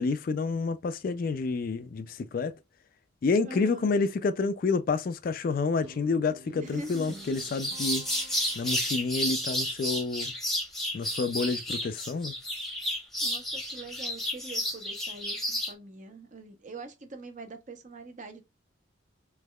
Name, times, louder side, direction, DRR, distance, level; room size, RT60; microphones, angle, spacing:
voice 1, 0.0-2.5 3.2-8.0 8.6-10.3 10.9-12.3, left 4 dB, 45° left, 0.3 m, -29 dB
voice 2, 3.4-3.9 6.6-7.2 13.2-18.4, right 2 dB, 40° right, 0.7 m, -44 dB
Guitar, 5.8-9.1, right 2 dB, 85° right, 0.9 m, -50 dB
sound 1, 6.8-15.7, equal, ahead, 0.9 m, -32 dB
3.4 x 3.1 x 2.3 m
head